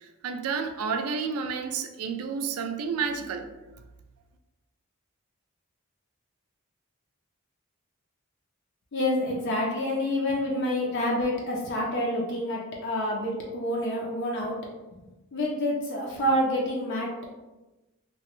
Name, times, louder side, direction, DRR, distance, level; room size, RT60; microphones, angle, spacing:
voice 1, 0.2-3.5, right 5 dB, 80° right, 7 dB, 0.3 m, -30 dB
voice 2, 8.9-14.6 14.9-15.0 15.3-17.1, left 1 dB, 55° left, -2 dB, 0.5 m, -28 dB
2.9 x 2.1 x 3.0 m, 1.1 s
head